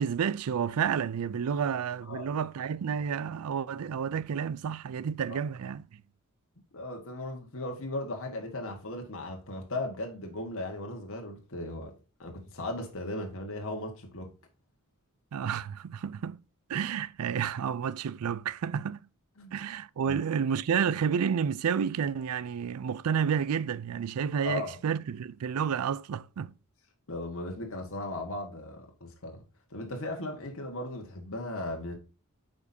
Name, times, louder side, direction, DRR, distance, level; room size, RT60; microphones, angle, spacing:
voice 1, 0.0-6.0 15.3-16.4 16.7-19.0 19.5-26.5, right 7 dB, 80° right, 0.4 m, -30 dB
voice 2, 2.0-2.3 5.3-5.4 6.7-11.9 12.2-14.3 19.4-19.5 20.0-20.2 24.4-24.8 27.1-29.4 29.7-32.0, left 2 dB, 65° left, 1.5 m, -37 dB
8.0 x 5.1 x 2.7 m
head